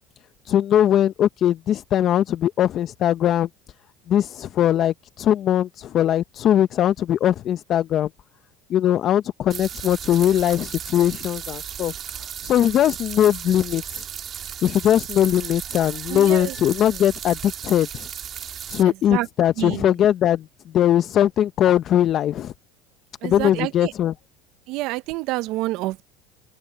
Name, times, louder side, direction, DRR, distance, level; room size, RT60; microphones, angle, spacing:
voice 1, 0.4-3.5 4.1-8.1 8.7-14.1 14.6-18.1 18.7-22.5 23.2-24.1, left 11 dB, 50° left, 0.7 m, -20 dB
sound 1, 9.5-18.8, right 9 dB, 40° right, 2.5 m, -35 dB
voice 2, 16.1-16.5 18.8-19.3 19.6-19.9 23.2-23.9 24.7-26.0, right 18 dB, 65° right, 0.9 m, -28 dB
open air
supercardioid pair, 100°, 0 cm